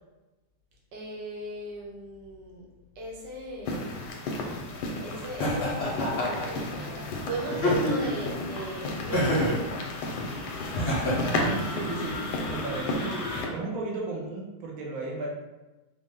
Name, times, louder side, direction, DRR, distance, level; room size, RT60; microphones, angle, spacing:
voice 1, 0.9-2.6 3.0-3.9 5.0-9.7, right 1 dB, 85° right, -3 dB, 1.5 m, -37 dB
sound 1, 3.6-13.5, left 2 dB, 80° left, 1.2 m, -33 dB
Laughter, 5.4-6.5 7.5-8.2 9.1-9.6 10.7-11.5, left 1 dB, 50° left, 0.8 m, -27 dB
voice 2, 11.1-13.2 13.5-15.3, right 3 dB, 65° right, -2 dB, 1.2 m, -34 dB
3.7 x 2.1 x 3.6 m, 1.1 s
omnidirectional pair, 1.8 m